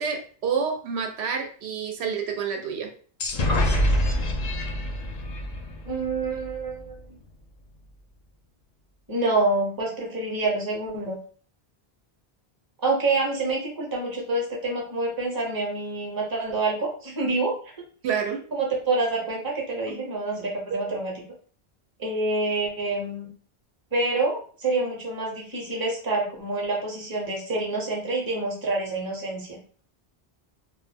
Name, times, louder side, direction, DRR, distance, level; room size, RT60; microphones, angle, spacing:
voice 1, 0.0-2.9 18.0-18.4 19.9-20.0 20.7-20.8, right 6 dB, 85° right, 3 dB, 0.8 m, -28 dB
sound 1, 3.2-6.9, left 1 dB, 55° left, 0.5 m, -26 dB
voice 2, 5.8-7.0 9.1-11.2 12.8-17.5 18.5-21.1 22.0-23.3 23.9-29.6, right 2 dB, 25° right, -1 dB, 0.7 m, -27 dB
2.2 x 2.0 x 3.4 m, 0.43 s
omnidirectional pair, 1.1 m